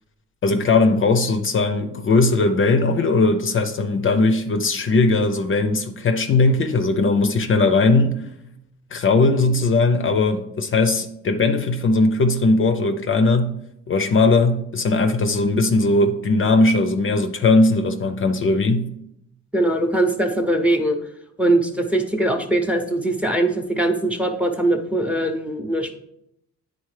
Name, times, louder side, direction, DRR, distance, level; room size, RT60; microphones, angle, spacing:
voice 1, 0.4-8.2 8.9-13.6 13.9-18.9, left 3 dB, 45° left, 0.5 m, -19 dB
voice 2, 19.5-21.0 21.4-25.9, right 1 dB, 5° right, 0.7 m, -21 dB
9.4 x 4.0 x 3.2 m
cardioid pair, 90°, 30 cm